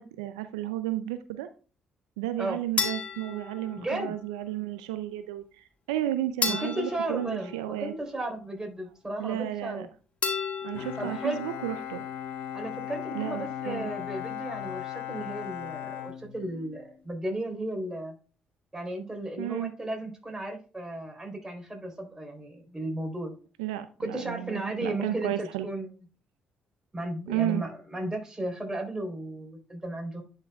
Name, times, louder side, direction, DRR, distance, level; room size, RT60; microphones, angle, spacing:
voice 1, 0.0-1.5 2.2-7.9 9.2-9.9 10.6-12.0 13.1-13.9 19.4-19.7 23.6-25.7 27.3-27.6, right 13 dB, 90° right, 11 dB, 0.4 m, -32 dB
sound 1, 2.8-4.3 6.4-8.3 10.2-11.3, left 5 dB, 40° left, 1.9 m, -33 dB
voice 2, 3.7-4.1 6.5-9.9 11.0-11.4 12.5-18.1 18.7-23.3 24.0-25.9 26.9-30.2, right 1 dB, 15° right, 3 dB, 3.7 m, -34 dB
Bowed string instrument, 10.7-16.9, left 11 dB, 75° left, 1.1 m, -37 dB
10.5 x 5.8 x 2.3 m, 0.36 s
hypercardioid pair, 50°, 3 cm